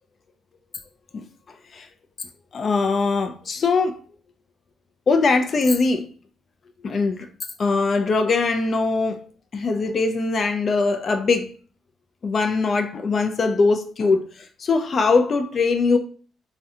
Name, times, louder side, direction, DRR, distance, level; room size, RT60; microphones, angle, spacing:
voice 1, 2.5-4.0 5.1-6.1 6.8-7.3 7.6-9.2 9.5-11.5 12.2-14.3 14.6-16.0, left 4 dB, 45° left, 0.3 m, -21 dB
2.7 x 2.1 x 3.6 m
cardioid pair, 90°, 0 cm